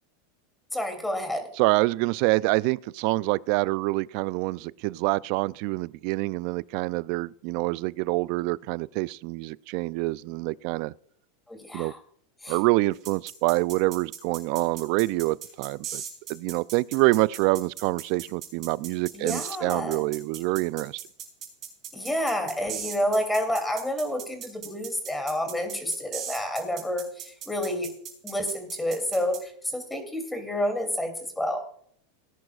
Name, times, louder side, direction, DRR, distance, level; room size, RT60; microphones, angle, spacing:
voice 1, 0.7-1.5 11.5-12.0 12.4-12.6 19.1-20.0 21.9-27.9 28.2-31.6, left 1 dB, 5° left, 2.9 m, -29 dB
voice 2, 1.6-10.9 11.7-11.9 12.5-16.0 16.3-21.0, right 22 dB, 60° right, 0.4 m, -26 dB
sound 1, 13.0-29.4, right 9 dB, 40° right, 4.8 m, -38 dB
19.0 x 10.5 x 2.4 m
hypercardioid pair, 110°, 0 cm